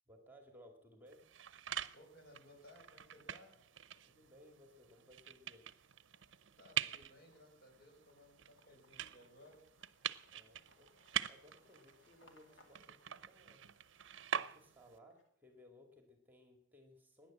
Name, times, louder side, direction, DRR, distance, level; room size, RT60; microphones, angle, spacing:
voice 1, 0.1-1.3 4.0-5.6 10.3-10.9 11.2-13.7 14.3-17.3, left 1 dB, 10° right, 4 dB, 2.2 m, -62 dB
sound 1, 1.0-1.6 2.0-15.6, left 2 dB, 75° left, 2.4 m, -73 dB
sound 2, 1.1-15.0, right 9 dB, 75° right, 0.6 m, -45 dB
voice 2, 1.9-3.6 6.6-9.6, left 1 dB, 55° left, 1 dB, 5.6 m, -61 dB
17.0 x 10.5 x 7.6 m, 0.69 s
head